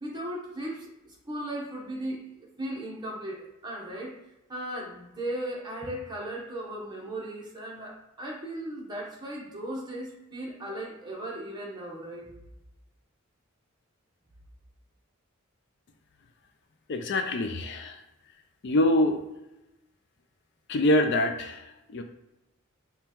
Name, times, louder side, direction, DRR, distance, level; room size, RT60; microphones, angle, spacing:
voice 1, 0.0-4.2 4.5-12.3, right 1 dB, 20° right, -2 dB, 0.9 m, -37 dB
voice 2, 16.9-18.0 18.6-19.2 20.7-22.0, left 1 dB, 55° left, 6 dB, 0.4 m, -25 dB
5.3 x 2.3 x 2.9 m, 0.97 s
head